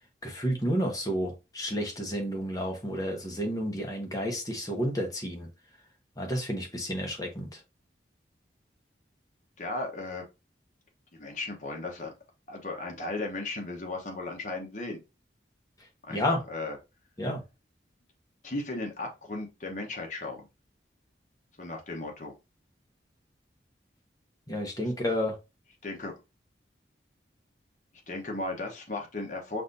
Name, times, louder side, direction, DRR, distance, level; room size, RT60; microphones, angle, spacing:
voice 1, 0.2-5.5 6.2-7.6 16.1-16.4 17.2-17.4 24.5-25.4, equal, 20° left, 1.1 m, -31 dB
voice 2, 9.6-10.2 11.1-12.1 12.5-15.0 16.0-16.8 18.4-20.5 21.6-22.3 25.8-26.1 28.1-29.6, left 2 dB, 45° left, 1.1 m, -36 dB
5.8 x 2.7 x 2.7 m
head